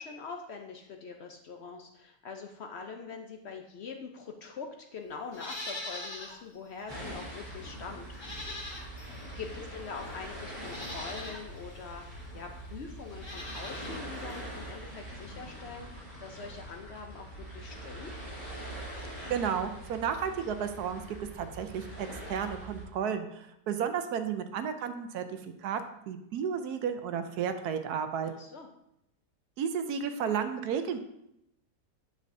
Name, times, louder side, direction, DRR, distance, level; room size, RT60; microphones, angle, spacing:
voice 1, 0.0-8.1 9.0-18.1 28.2-28.7, left 5 dB, 70° left, 4 dB, 0.6 m, -44 dB
Livestock farm animals working animals, 5.3-6.4 6.8-6.9 8.1-9.2 10.0-10.1 10.6-11.4 13.1-14.0 14.3-14.4, left 1 dB, 25° left, 0.6 m, -41 dB
sound 1, 6.9-22.8, right 1 dB, 25° right, 3.0 m, -43 dB
voice 2, 19.3-28.3 29.6-31.0, right 7 dB, 70° right, 8 dB, 1.1 m, -33 dB
8.3 x 6.6 x 2.6 m, 0.80 s
omnidirectional pair, 1.8 m